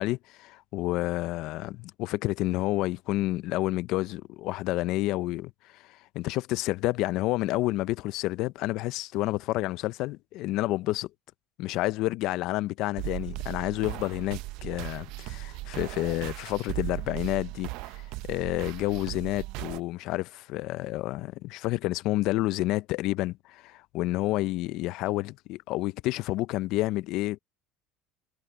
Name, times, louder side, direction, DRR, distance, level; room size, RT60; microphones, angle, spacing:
voice 1, 0.0-11.1 11.6-18.0 18.3-27.4, left 18 dB, 65° left, 0.5 m, -29 dB
sound 1, 13.0-19.8, right 20 dB, 75° right, 0.6 m, -37 dB
supercardioid pair, 105°, 0 cm